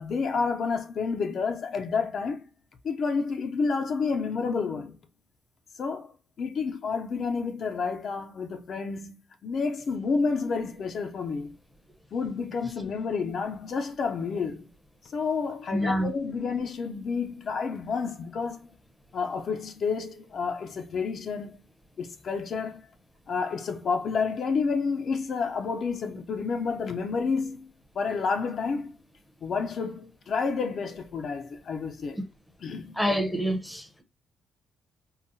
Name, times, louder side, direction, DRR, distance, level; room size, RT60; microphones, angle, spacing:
voice 1, 0.0-2.5 2.8-5.0 5.8-6.1 6.4-11.6 12.1-14.7 15.1-18.7 19.1-21.6 22.0-22.9 23.3-27.7 27.9-28.9 29.4-32.2 32.6-33.0, left 5 dB, 55° left, 0.5 m, -30 dB
voice 2, 15.7-16.1 32.1-32.2 32.9-34.0, equal, ahead, 0.6 m, -27 dB
3.8 x 2.1 x 2.7 m
cardioid pair, 90°, 0 cm